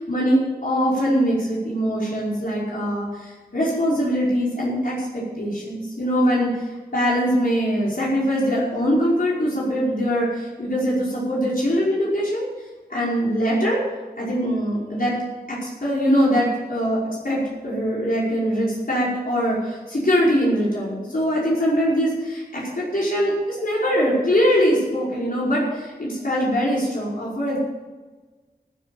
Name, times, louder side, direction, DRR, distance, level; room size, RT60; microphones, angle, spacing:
voice 1, 0.1-6.7 6.9-12.5 12.9-13.8 14.2-15.2 15.5-17.0 17.2-27.6, equal, 60° left, -7 dB, 5.4 m, -22 dB
14.5 x 9.4 x 7.3 m, 1.3 s
wide cardioid pair, 70°, 17 cm